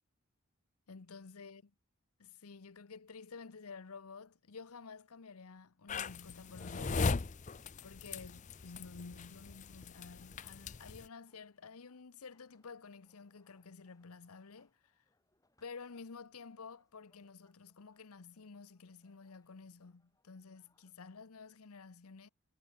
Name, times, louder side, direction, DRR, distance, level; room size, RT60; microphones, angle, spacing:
voice 1, 0.9-1.6 2.2-7.1 7.8-15.0 15.6-22.3, left 4 dB, 90° left, 0.8 m, -51 dB
sound 1, 5.9-11.1, left 4 dB, 35° left, 0.5 m, -39 dB
sound 2, 9.1-20.9, left 2 dB, 15° left, 5.7 m, -79 dB
head